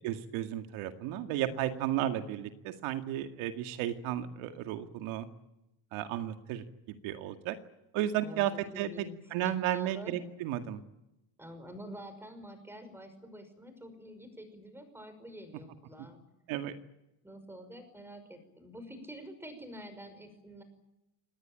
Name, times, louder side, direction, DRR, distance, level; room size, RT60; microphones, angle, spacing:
voice 1, 0.0-5.3 5.9-7.6 7.9-8.9 9.3-10.8 16.5-16.7, right 12 dB, 75° right, 7 dB, 2.2 m, -33 dB
voice 2, 8.2-10.1 11.4-16.2 17.2-20.6, equal, 5° right, 9 dB, 5.6 m, -47 dB
26.5 x 19.5 x 8.9 m, 0.91 s
cardioid pair, 155°, 48 cm